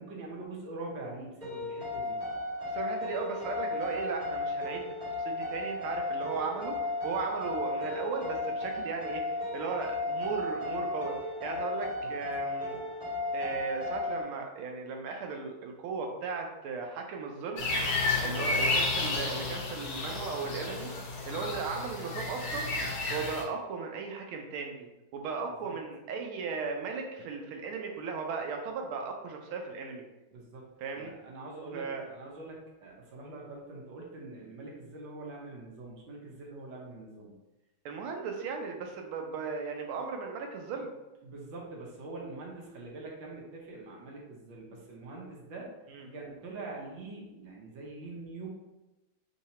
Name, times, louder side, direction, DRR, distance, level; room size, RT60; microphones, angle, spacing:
voice 1, 0.0-2.2 12.0-12.1 18.1-18.6 21.3-21.5 25.6-25.7 30.3-30.7 31.0-37.3 41.2-45.7 46.1-48.5, right 2 dB, 70° right, -2 dB, 1.6 m, -44 dB
sound 1, 1.4-14.2, left 2 dB, 20° right, 1.3 m, -34 dB
voice 2, 2.6-12.8 13.3-17.7 18.2-20.9 21.3-22.7 23.1-24.9 25.1-30.0 30.8-31.1 31.7-32.0 37.8-40.9 45.9-46.1, right 5 dB, 85° right, 3 dB, 1.5 m, -36 dB
sound 2, 17.6-23.4, left 3 dB, 55° left, 1.1 m, -31 dB
3.8 x 2.8 x 4.2 m, 1.0 s
omnidirectional pair, 2.3 m